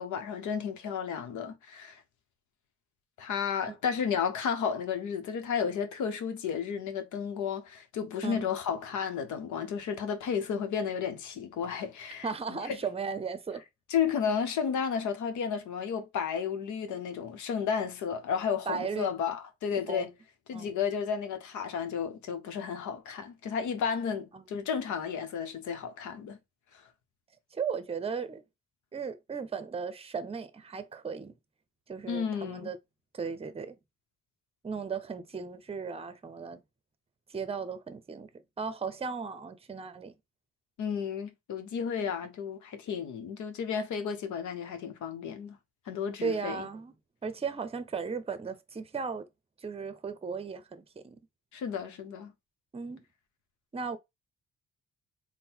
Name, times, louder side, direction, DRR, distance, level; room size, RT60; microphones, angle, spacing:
voice 1, 0.0-2.0 3.2-12.8 13.9-20.1 20.5-26.4 32.1-32.7 40.8-45.6 45.9-46.6 51.5-52.3, left 7 dB, 75° left, 0.9 m, -32 dB
voice 2, 12.2-13.6 18.7-19.1 19.7-20.1 20.5-20.7 24.3-24.4 27.5-28.4 28.9-31.3 31.9-32.8 33.1-33.8 34.6-36.6 37.3-40.1 46.2-46.9 47.2-49.3 49.6-51.2 52.7-53.0 53.7-54.0, right 5 dB, 20° right, 0.6 m, -36 dB
3.7 x 2.2 x 4.3 m
cardioid pair, 90°, 30 cm